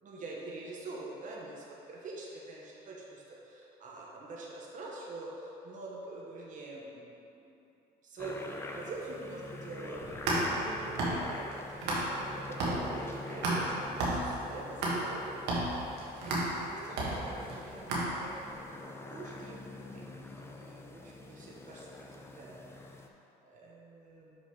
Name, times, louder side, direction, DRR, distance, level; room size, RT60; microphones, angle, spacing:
voice 1, 0.0-7.6 8.0-15.4 15.7-15.9 16.2-22.8 23.5-24.4, right 2 dB, 50° right, -4 dB, 1.3 m, -45 dB
sound 1, 8.2-23.1, left 2 dB, 15° left, 0.6 m, -45 dB
Mysounds LG-FR Arielle-small pocket, 9.9-12.3 12.6-18.5, right 1 dB, 80° right, 1.7 m, -33 dB
6.3 x 5.2 x 4.8 m, 2.9 s
cardioid pair, 110°, 17 cm